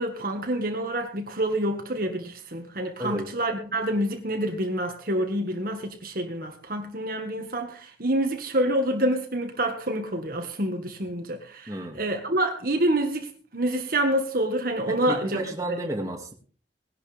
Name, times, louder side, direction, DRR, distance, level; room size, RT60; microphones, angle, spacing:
voice 1, 0.0-11.7 12.0-13.3 13.5-15.4, right 1 dB, 50° right, 1.7 m, -27 dB
voice 2, 11.7-12.0 14.9-16.3, right 1 dB, 20° right, 2.2 m, -32 dB
18.5 x 11.5 x 3.5 m
head